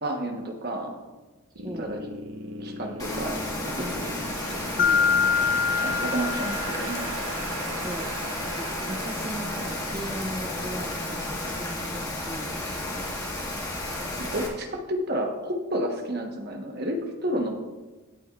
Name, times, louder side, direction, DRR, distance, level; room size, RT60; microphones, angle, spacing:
voice 1, 0.0-1.0 1.8-2.0 2.6-3.4 3.8-4.2 5.8-7.1 14.2-17.6, right 1 dB, 45° right, 3 dB, 1.2 m, -31 dB
sound 1, 1.5-12.7, right 2 dB, 70° right, 1.1 m, -38 dB
Rain, 3.0-14.5, left 1 dB, 15° left, 1.4 m, -32 dB
voice 2, 4.7-5.0 7.8-8.1 8.5-13.0, right 1 dB, 20° right, 2 dB, 0.5 m, -38 dB
Mallet percussion, 4.8-7.4, left 6 dB, 40° left, 0.5 m, -25 dB
16.5 x 7.7 x 2.5 m, 1.2 s
head